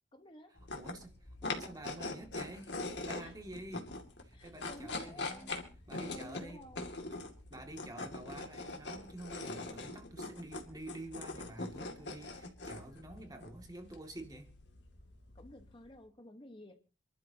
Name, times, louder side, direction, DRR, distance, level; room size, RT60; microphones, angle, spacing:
voice 1, 0.1-0.5 1.6-1.7 3.2-3.3 4.3-5.6 6.1-6.9 15.3-16.8, left 1 dB, 25° left, 1.3 m, -53 dB
sound 1, 0.6-15.9, left 2 dB, 65° left, 2.4 m, -43 dB
voice 2, 0.7-3.9 4.2-5.5 5.9-6.6 7.5-14.5, right 1 dB, 20° right, 2.3 m, -48 dB
27.5 x 12.0 x 2.9 m
head